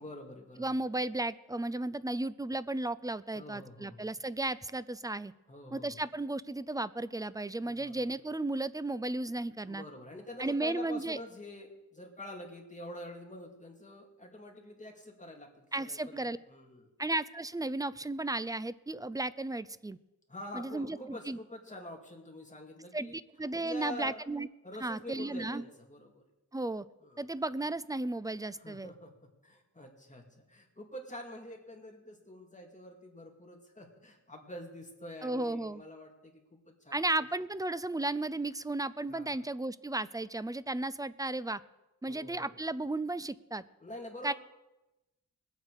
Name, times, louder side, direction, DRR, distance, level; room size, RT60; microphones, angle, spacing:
voice 1, 0.0-0.8 3.3-4.1 5.5-6.0 7.6-8.0 9.7-16.9 20.3-23.2 23.5-24.2 24.6-26.2 27.0-27.3 28.6-29.1 29.4-37.2 39.1-39.4 42.1-42.6 43.8-44.3, left 1 dB, 20° left, 1 dB, 2.5 m, -46 dB
voice 2, 0.6-5.3 5.7-9.8 10.4-11.2 15.7-16.4 17.0-20.0 20.5-21.4 22.9-24.5 24.8-25.6 26.5-26.9 27.2-28.9 35.2-35.8 36.9-41.6 42.0-43.6 44.2-44.3, right 2 dB, 10° right, 17 dB, 0.4 m, -34 dB
21.0 x 8.2 x 4.9 m, 0.99 s
wide cardioid pair, 95°, 35 cm